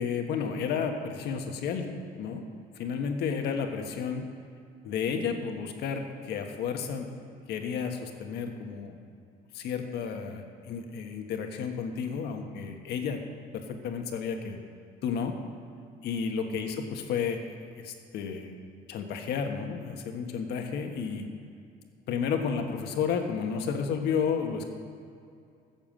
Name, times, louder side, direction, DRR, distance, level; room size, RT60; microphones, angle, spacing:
voice 1, 0.0-1.9 2.2-2.4 2.7-4.3 4.8-7.1 7.5-9.0 9.5-13.2 13.5-14.6 15.0-15.3 16.0-17.4 17.8-18.5 18.9-21.3 22.1-24.7, left 6 dB, 75° left, 4 dB, 1.5 m, -32 dB
15.0 x 7.2 x 7.4 m, 2.4 s
cardioid pair, 110°, 17 cm